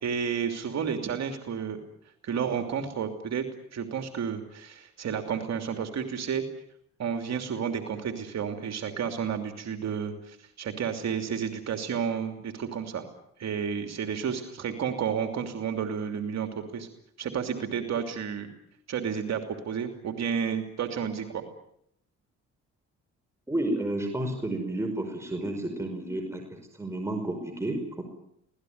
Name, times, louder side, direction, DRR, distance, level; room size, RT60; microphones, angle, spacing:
voice 1, 0.0-1.8 2.2-6.4 7.0-13.1 13.4-16.9 17.2-18.5 18.9-21.4, right 7 dB, 60° right, 5 dB, 3.0 m, -31 dB
voice 2, 23.5-28.0, right 1 dB, 10° right, 3 dB, 5.3 m, -31 dB
25.0 x 18.0 x 9.5 m, 0.76 s
cardioid pair, 90°, 30 cm